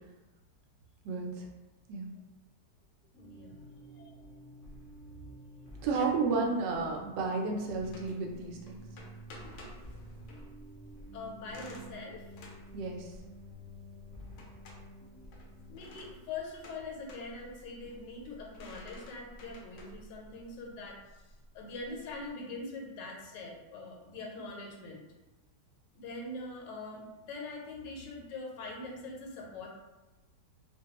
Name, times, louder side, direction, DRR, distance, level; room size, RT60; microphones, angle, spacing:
voice 1, 1.0-1.5 1.9-2.1 5.8-8.8 12.7-13.1, right 4 dB, 85° right, 1 dB, 1.2 m, -32 dB
sound 1, 3.1-16.1, equal, 20° left, 0.6 m, -50 dB
voice 2, 3.2-3.6 3.9-4.2 5.9-6.1 11.1-12.2 15.7-21.2 21.5-25.1 25.9-29.7, left 3 dB, 90° left, 0 dB, 1.3 m, -43 dB
sound 2, 7.8-22.3, left 1 dB, 70° left, 0.8 m, -53 dB
2.9 x 2.2 x 2.8 m, 1.1 s
omnidirectional pair, 1.9 m